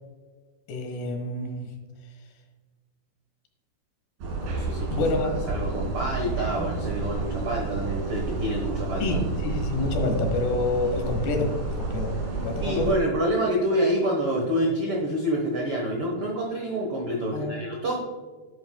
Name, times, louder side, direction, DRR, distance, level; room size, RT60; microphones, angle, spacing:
voice 1, 0.7-1.7 4.9-5.4 6.5-6.6 9.0-12.1 12.4-13.0 17.3-17.8, left 2 dB, 80° left, 4 dB, 3.5 m, -28 dB
sound 1, 4.2-13.0, right 3 dB, 60° right, 3.4 m, -30 dB
voice 2, 4.4-5.0 5.5-9.2 12.6-18.0, right 1 dB, 85° right, -1 dB, 1.2 m, -27 dB
10.5 x 8.8 x 2.3 m, 1.4 s
omnidirectional pair, 4.7 m